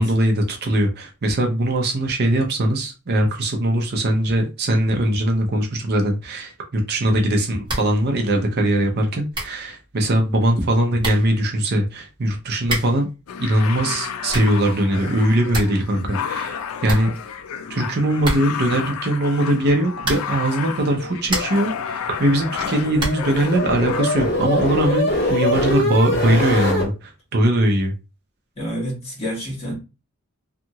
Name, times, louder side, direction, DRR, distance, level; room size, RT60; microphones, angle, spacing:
voice 1, 0.0-13.1 13.4-17.1 17.7-27.9, right 1 dB, 45° right, 0.5 m, -21 dB
sound 1, 7.6-8.0 8.3-8.4 9.0-9.1 9.3-9.7 10.6-10.7 11.0-11.4 12.6-13.1 14.0-14.6 15.0-15.1 15.3-15.9 16.1-16.2 16.5-16.6 16.8-17.6 18.2-18.7 20.0-20.5 21.0-21.7 23.0-23.4, right 1 dB, 20° right, 1.0 m, -28 dB
sound 2, 13.3-24.3, left 7 dB, 75° left, 0.4 m, -31 dB
sound 3, 22.2-26.9, left 1 dB, 50° left, 1.3 m, -23 dB
voice 2, 28.6-29.8, equal, 30° left, 1.3 m, -28 dB
2.8 x 2.4 x 2.7 m
head